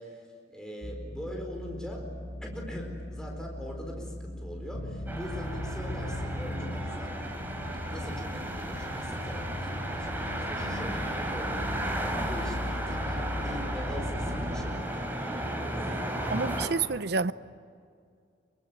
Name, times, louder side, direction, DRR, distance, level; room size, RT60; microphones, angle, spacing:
voice 1, 0.0-2.1 2.4-7.2 7.9-16.0, equal, 5° left, 4.4 m, -42 dB
sound 1, 0.8-6.4, equal, 35° right, 5.1 m, -41 dB
sound 2, 4.7-14.8, left 1 dB, 85° left, 3.6 m, -37 dB
sound 3, 5.1-16.7, right 1 dB, 10° right, 3.9 m, -34 dB
voice 2, 16.3-17.3, right 4 dB, 65° right, 0.7 m, -28 dB
26.0 x 24.5 x 9.3 m
head